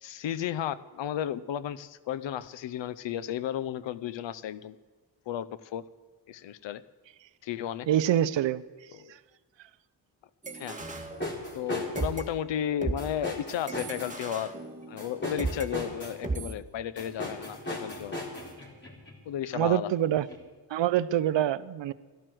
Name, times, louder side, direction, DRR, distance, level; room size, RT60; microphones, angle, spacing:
voice 1, 0.0-4.8 5.3-5.8 6.3-6.8 7.4-7.9 8.9-9.1 10.5-10.8 11.5-14.5 14.9-18.2 19.3-19.9, left 10 dB, 90° left, 16 dB, 0.7 m, -33 dB
voice 2, 7.9-8.6 19.5-20.3 20.7-21.9, right 11 dB, 80° right, 15 dB, 0.7 m, -25 dB
sound 1, 10.4-11.7 12.0-15.7 16.2-16.5, right 3 dB, 15° right, 1.9 m, -36 dB
sound 2, 10.8-12.2 13.0-14.2 15.0-16.2 17.0-19.2 20.3-20.4, left 1 dB, 25° left, 4.1 m, -37 dB
12.5 x 12.0 x 7.7 m, 1.4 s
cardioid pair, 65°, 43 cm